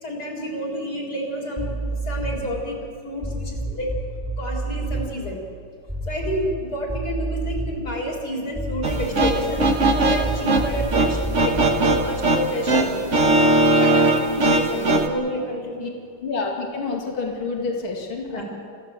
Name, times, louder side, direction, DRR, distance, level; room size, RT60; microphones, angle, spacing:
voice 1, 0.0-3.9 4.4-5.4 6.1-12.9 13.7-15.9 18.3-18.4, left 1 dB, 45° left, -1 dB, 4.4 m, -29 dB
sound 1, 1.6-2.5 3.2-5.1 5.9-6.6 6.9-7.9 8.5-12.2, right 2 dB, 5° right, 2.7 m, -29 dB
sound 2, 8.8-15.1, right 2 dB, 40° right, 1.6 m, -20 dB
voice 2, 16.2-18.4, left 4 dB, 70° left, 1 dB, 3.0 m, -28 dB
28.5 x 15.0 x 7.5 m, 2.2 s
omnidirectional pair, 2.3 m